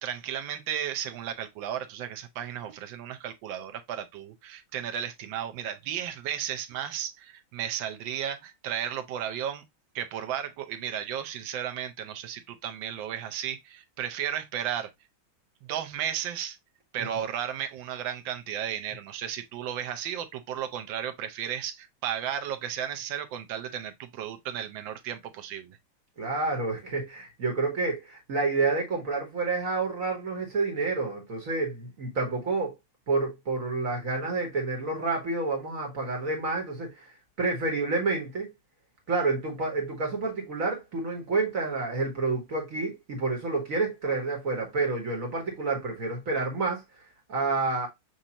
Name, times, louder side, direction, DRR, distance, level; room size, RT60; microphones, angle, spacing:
voice 1, 0.0-9.6 9.9-14.9 15.6-16.6 16.9-25.8, right 9 dB, 75° right, 1.4 m, -34 dB
voice 2, 26.2-32.7 33.1-37.1 37.4-38.5 39.1-46.8 47.3-47.9, right 3 dB, 45° right, 1.5 m, -29 dB
6.3 x 2.6 x 2.8 m
omnidirectional pair, 2.2 m